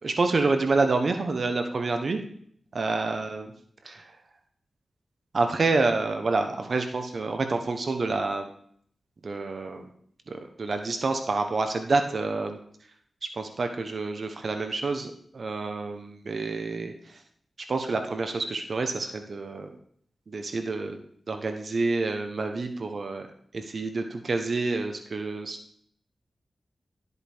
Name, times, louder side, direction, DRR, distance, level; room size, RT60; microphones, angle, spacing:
voice 1, 0.0-2.2 2.7-3.5 3.8-4.2 5.3-8.5 9.2-9.9 10.3-12.6 13.2-17.2 17.7-19.7 20.3-21.0 21.3-23.3 23.5-25.6, right 3 dB, 60° right, 6 dB, 1.2 m, -28 dB
13.0 x 8.1 x 3.6 m, 0.62 s
cardioid pair, 60°, 0 cm